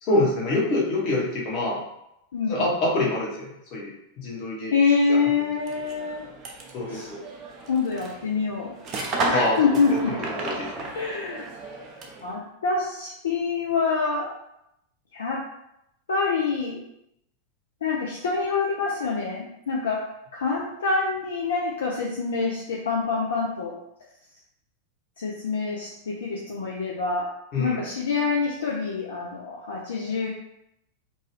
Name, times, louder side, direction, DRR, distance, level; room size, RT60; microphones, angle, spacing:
voice 1, 0.0-1.8 2.5-3.9 4.2-4.7 5.1-5.2 6.7-7.2 9.3-9.6 9.9-10.8 27.5-27.8, left 2 dB, 40° left, -4 dB, 1.0 m, -26 dB
voice 2, 4.7-6.3 6.9-7.1 7.7-8.7 9.3-10.1 10.9-11.5 12.2-14.3 15.1-15.4 16.1-16.8 17.8-20.0 20.3-23.7 25.2-27.3 27.6-30.3, left 4 dB, 65° left, -3 dB, 0.5 m, -26 dB
sound 1, 5.6-12.3, right 3 dB, 35° right, 0.5 m, -33 dB
2.6 x 2.3 x 3.1 m, 0.81 s
figure-of-eight pair, 90°, 0 cm